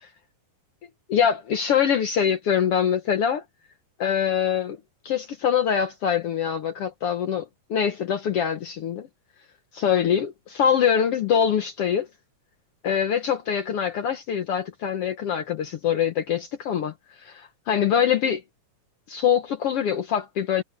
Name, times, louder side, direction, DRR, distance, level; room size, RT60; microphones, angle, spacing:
voice 1, 1.1-3.4 4.0-4.8 5.0-9.1 9.7-12.1 12.8-18.4 19.1-20.6, left 8 dB, 65° left, 1.6 m, -24 dB
omnidirectional pair, 3.7 m